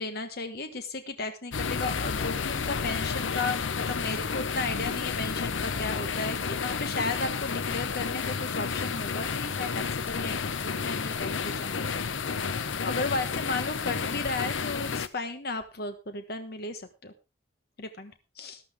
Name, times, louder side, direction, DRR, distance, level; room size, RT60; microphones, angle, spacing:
voice 1, 0.0-12.0 12.4-17.1 17.8-18.6, left 3 dB, 55° left, 8 dB, 1.3 m, -35 dB
sound 1, 1.5-15.1, left 5 dB, 75° left, 0.7 m, -31 dB
14.0 x 12.0 x 3.5 m, 0.29 s
head